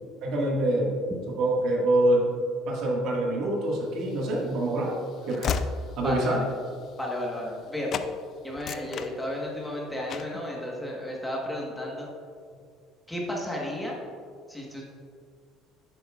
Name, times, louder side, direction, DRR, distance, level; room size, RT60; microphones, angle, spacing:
voice 1, 0.2-0.9 1.4-2.3 2.7-5.0 5.3-5.5 6.0-6.4, right 1 dB, 60° right, -2 dB, 1.7 m, -25 dB
Train / Slam, 4.0-7.6 7.9-8.1 8.5-9.7 10.1-10.4, left 6 dB, 45° left, 0.4 m, -34 dB
voice 2, 6.0-6.4 7.0-7.9 8.4-12.1 13.1-14.0 14.5-14.8, left 1 dB, 5° left, -3 dB, 1.2 m, -33 dB
10.0 x 7.8 x 2.4 m, 2.2 s
cardioid pair, 140°, 0 cm